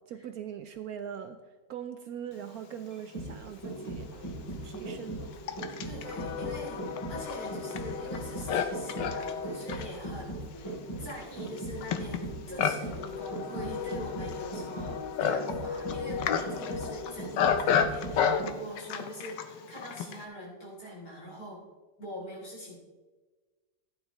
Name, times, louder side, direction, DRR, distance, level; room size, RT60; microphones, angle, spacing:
voice 1, 0.0-1.4 1.7-4.1 4.6-5.2, right 9 dB, 70° right, 8 dB, 0.9 m, -41 dB
sound 1, 2.9-18.8 19.1-19.2, right 1 dB, 15° left, 3.2 m, -39 dB
Livestock farm animals working animals, 3.5-3.6 4.3-20.3, left 7 dB, 90° left, 1.4 m, -32 dB
voice 2, 5.8-10.6 11.0-21.7 22.0-22.8, equal, 55° left, -4 dB, 3.6 m, -43 dB
15.0 x 9.6 x 3.0 m, 1.3 s
omnidirectional pair, 1.9 m